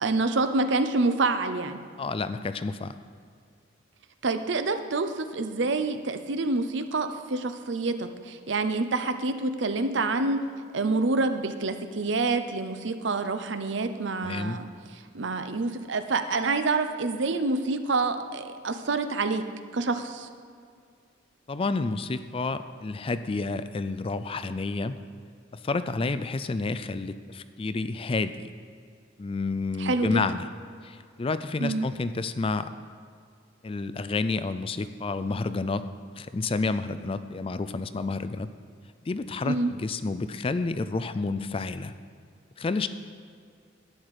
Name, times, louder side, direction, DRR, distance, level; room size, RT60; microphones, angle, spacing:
voice 1, 0.0-1.8 4.2-10.4 10.7-14.7 15.1-19.4 19.7-20.3 29.8-30.2 31.6-31.9 39.5-39.7, right 3 dB, 70° right, 9 dB, 0.7 m, -27 dB
voice 2, 2.0-2.9 14.2-14.6 21.5-24.9 25.6-28.5 29.2-30.5 30.8-32.7 33.6-35.8 36.2-38.5 39.1-41.9 42.6-42.9, left 3 dB, 30° left, 12 dB, 0.4 m, -30 dB
11.5 x 9.3 x 4.9 m, 2.2 s
head